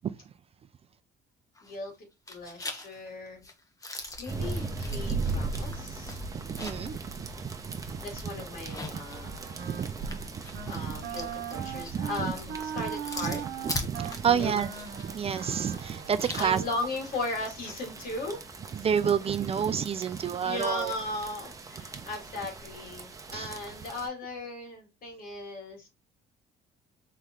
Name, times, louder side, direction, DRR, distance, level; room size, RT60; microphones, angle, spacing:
sound 1, 1.5-2.0 2.3-7.0 7.3-7.4 8.5-17.8, left 2 dB, 20° left, 1.1 m, -42 dB
voice 1, 1.6-1.9 2.3-3.4 4.2-6.2 8.0-9.4 10.7-13.4 14.2-14.6 16.3-18.4 20.4-25.9, left 2 dB, 60° left, 3.0 m, -37 dB
sound 2, 4.3-24.1, right 3 dB, 20° right, 0.9 m, -39 dB
voice 2, 6.3-8.0 8.7-8.8 9.6-11.0 11.6-12.3 13.6-14.7 15.0-16.6 18.8-20.9 21.9-22.0 23.3-23.5, right 7 dB, 35° right, 0.5 m, -30 dB
Wind instrument woodwind instrument, 9.1-10.2 10.5-10.8 11.0-16.3, right 8 dB, 75° right, 1.0 m, -39 dB
4.2 x 3.2 x 3.7 m
cardioid pair, 110°, 17 cm